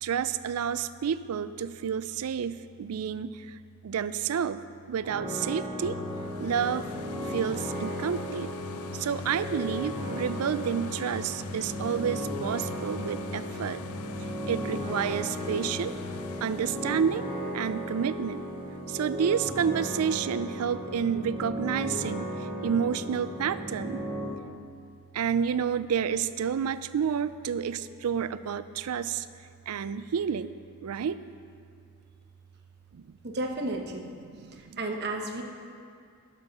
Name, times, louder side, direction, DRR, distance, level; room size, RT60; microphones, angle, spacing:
voice 1, 0.0-3.3 3.8-4.6 4.9-6.0 6.4-6.9 7.3-8.5 8.9-13.8 14.5-15.9 16.4-17.3 17.5-18.4 18.9-22.3 22.6-24.0 25.1-29.2 29.7-30.5 30.8-31.2 32.9-33.0 34.3-34.8, right 7 dB, 80° right, 14 dB, 0.4 m, -29 dB
sound 1, 5.0-24.2, equal, 20° right, 2.0 m, -36 dB
sound 2, 5.8-19.5 20.0-20.1, left 5 dB, 75° left, 0.4 m, -43 dB
voice 2, 33.3-34.1 34.8-35.4, right 2 dB, 50° right, 2 dB, 1.0 m, -32 dB
11.5 x 7.3 x 5.4 m, 2.3 s
head